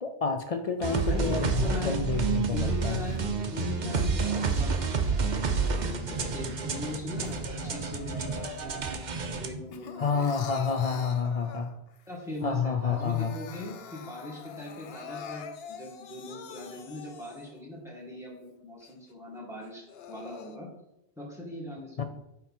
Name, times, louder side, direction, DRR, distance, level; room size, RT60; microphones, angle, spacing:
voice 1, 0.0-3.0 10.0-11.7 12.4-13.3 22.0-22.1, left 5 dB, 50° left, 7 dB, 0.4 m, -29 dB
Crying sobbing, 0.8-3.2 3.8-5.6 6.1-9.0 9.3-12.0 12.4-12.5 12.8-17.6 18.2-18.3 18.8-18.9 19.6-20.6, left 7 dB, 70° left, 0.8 m, -45 dB
sound 1, 0.8-9.5, right 4 dB, 50° right, 0.8 m, -29 dB
voice 2, 1.0-2.2 2.5-10.3 12.1-20.7 21.2-22.0, left 2 dB, 5° right, -4 dB, 2.0 m, -40 dB
9.7 x 3.7 x 4.3 m, 0.86 s
omnidirectional pair, 1.1 m